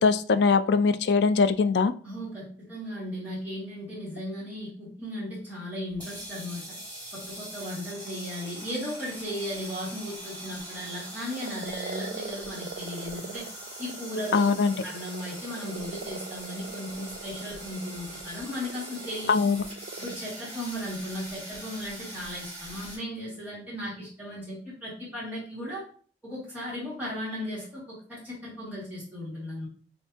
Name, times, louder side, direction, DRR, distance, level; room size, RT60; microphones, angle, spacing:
voice 1, 0.0-1.9 14.3-14.7 19.3-19.6, left 5 dB, 70° left, 11 dB, 0.4 m, -22 dB
voice 2, 2.0-6.8 7.1-13.5 13.8-14.5 14.8-19.4 20.0-25.9 26.2-29.7, equal, 10° right, -8 dB, 1.9 m, -36 dB
sound 1, 5.9-23.0, right 1 dB, 10° left, 2.1 m, -42 dB
sound 2, 10.9-20.2, right 5 dB, 60° right, 0.4 m, -42 dB
6.7 x 2.7 x 2.8 m, 0.43 s
head